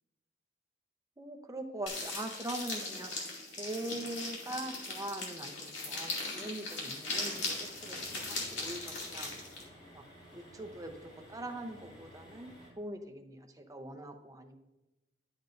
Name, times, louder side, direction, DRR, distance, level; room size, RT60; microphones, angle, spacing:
voice 1, 1.2-3.1 3.6-9.3 9.9-10.0 10.3-14.6, right 1 dB, 20° right, 5 dB, 0.7 m, -42 dB
sound 1, 1.9-9.6, left 3 dB, 70° left, 2.5 m, -39 dB
sound 2, 7.3-12.7, equal, 30° left, 2.6 m, -54 dB
10.5 x 7.7 x 2.6 m, 0.99 s
head